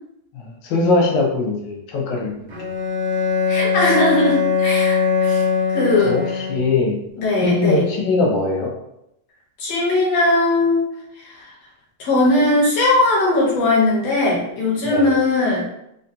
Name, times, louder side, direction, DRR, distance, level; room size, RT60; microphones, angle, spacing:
voice 1, 0.3-2.5 6.0-7.0 7.4-8.7 14.9-15.1, left 3 dB, 90° left, -3 dB, 2.2 m, -21 dB
Bowed string instrument, 2.5-6.9, left 6 dB, 80° right, 0.9 m, -21 dB
voice 2, 3.5-5.4 5.7-6.2 7.2-7.8 9.6-10.9 11.2-11.5 12.0-15.7, left 2 dB, 65° left, -5 dB, 2.1 m, -19 dB
5.5 x 2.2 x 2.6 m, 0.80 s
omnidirectional pair, 3.4 m